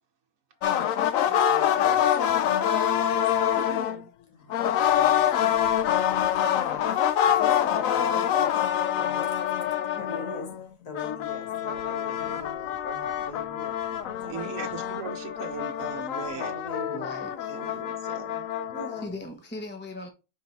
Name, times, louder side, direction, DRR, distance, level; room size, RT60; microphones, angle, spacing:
sound 1, 0.6-4.0 4.5-10.6 10.9-19.1, left 10 dB, 70° left, 1.0 m, -26 dB
voice 1, 1.3-5.7 6.1-6.9 7.2-9.3 9.9-10.6 10.8-13.8 14.2-14.8 16.4-17.1 18.7-19.2, left 2 dB, 85° left, 2.4 m, -41 dB
voice 2, 14.3-16.5 17.5-18.4, right 7 dB, 65° right, 1.1 m, -39 dB
voice 3, 16.9-17.6 18.9-20.1, left 1 dB, 10° left, 0.8 m, -39 dB
5.1 x 4.9 x 4.0 m
omnidirectional pair, 1.5 m